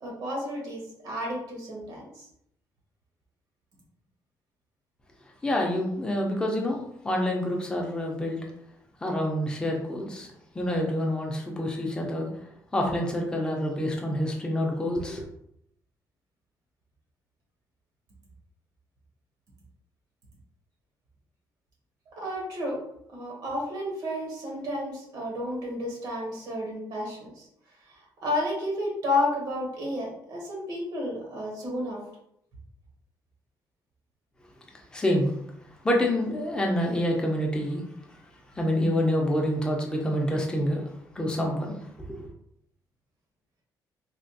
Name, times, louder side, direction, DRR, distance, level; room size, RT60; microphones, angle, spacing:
voice 1, 0.0-2.3 22.2-22.8 23.1-27.5 27.9-32.0, left 1 dB, 65° right, -2 dB, 1.1 m, -31 dB
voice 2, 5.4-8.4 9.0-10.3 10.5-12.3 12.7-15.2 34.9-35.3 35.8-37.8 38.6-40.8 41.2-41.8 42.1-42.3, left 1 dB, 10° left, 0 dB, 0.5 m, -27 dB
3.3 x 2.4 x 2.6 m, 0.73 s
cardioid pair, 160°, 7 cm